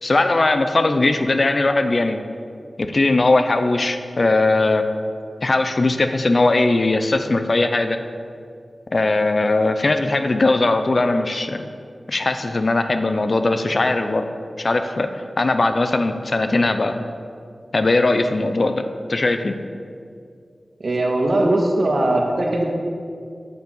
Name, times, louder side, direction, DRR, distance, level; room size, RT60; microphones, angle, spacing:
voice 1, 0.0-2.2 2.8-4.8 5.4-8.0 8.9-11.6 12.1-14.3 14.6-17.1 17.7-18.8 19.1-19.6, left 2 dB, 60° left, 8 dB, 0.8 m, -19 dB
voice 2, 20.8-22.6, right 1 dB, 65° right, 0 dB, 1.9 m, -19 dB
8.3 x 7.0 x 7.9 m, 2.3 s
cardioid pair, 45°, 0 cm